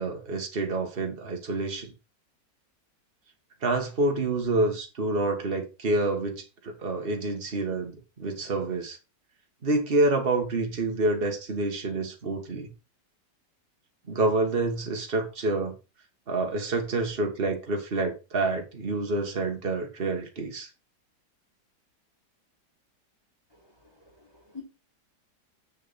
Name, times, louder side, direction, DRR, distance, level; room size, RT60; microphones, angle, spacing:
voice 1, 0.0-1.9 3.6-9.0 9.6-12.7 14.1-15.8 16.3-20.7, right 2 dB, 30° right, 1.8 m, -28 dB
voice 2, 24.0-24.6, left 5 dB, 15° left, 3.0 m, -46 dB
8.0 x 6.4 x 4.2 m
omnidirectional pair, 1.9 m